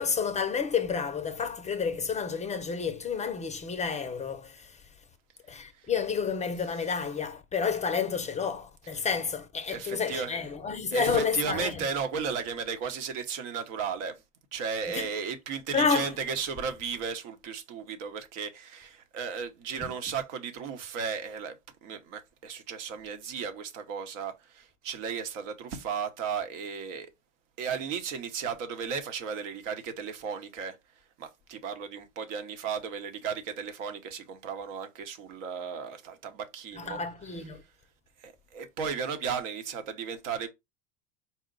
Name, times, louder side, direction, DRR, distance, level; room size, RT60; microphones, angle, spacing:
voice 1, 0.0-4.9 5.5-11.9 14.9-15.1 15.7-16.1 19.8-19.9 36.8-37.6, left 6 dB, 20° left, 0.4 m, -30 dB
voice 2, 9.7-10.4 10.9-14.2 14.5-21.6 21.8-27.1 27.6-30.8 31.2-37.0 38.2-40.5, right 6 dB, 75° right, 1.0 m, -35 dB
4.3 x 2.1 x 3.7 m
supercardioid pair, 105°, 37 cm